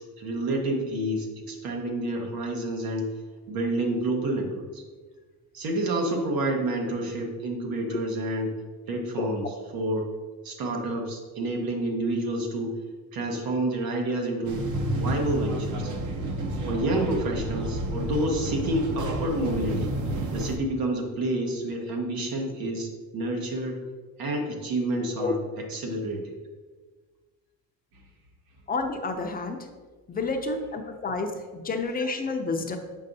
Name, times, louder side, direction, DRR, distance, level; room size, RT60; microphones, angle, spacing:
voice 1, 0.2-3.1 3.5-4.8 5.5-8.5 8.9-10.1 10.4-12.7 13.1-14.6 14.9-15.9 16.7-20.0 20.3-23.8 24.2-26.3, right 1 dB, 85° right, 2 dB, 1.2 m, -29 dB
sound 1, 14.5-20.6, right 1 dB, 60° right, 0.7 m, -30 dB
voice 2, 28.7-29.6 30.1-32.8, left 3 dB, 25° left, 4 dB, 0.4 m, -29 dB
7.3 x 5.4 x 2.7 m, 1.4 s
cardioid pair, 160°, 35 cm